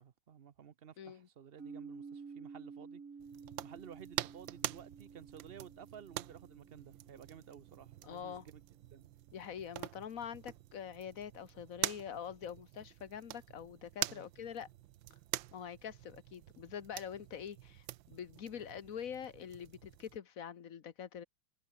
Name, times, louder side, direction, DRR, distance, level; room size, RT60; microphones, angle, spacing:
voice 1, 0.0-3.0 3.6-8.6 8.9-9.1 14.1-14.3, right 8 dB, 60° right, 0.6 m, -54 dB
voice 2, 1.0-1.3 8.0-8.5 9.3-14.7 15.5-21.2, left 8 dB, 50° left, 1.4 m, -45 dB
sound 1, 1.6-9.4, right 5 dB, 45° right, 2.3 m, -53 dB
sound 2, 3.2-20.2, right 15 dB, 85° right, 1.4 m, -45 dB
omnidirectional pair, 2.1 m